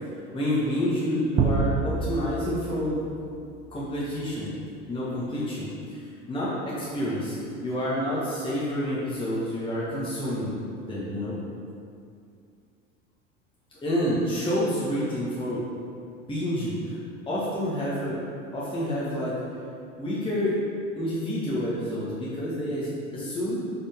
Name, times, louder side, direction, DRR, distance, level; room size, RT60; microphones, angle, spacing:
voice 1, 0.3-3.0 3.7-4.5 4.9-10.6 10.8-11.3 13.7-15.6 16.1-17.0 17.3-18.2 18.5-19.3 20.0-20.6 20.9-23.6, equal, 15° left, -9 dB, 1.6 m, -28 dB
sound 1, 1.4-4.0, right 4 dB, 20° right, 0.3 m, -28 dB
6.3 x 6.0 x 3.6 m, 2.4 s
figure-of-eight pair, 80°, 38 cm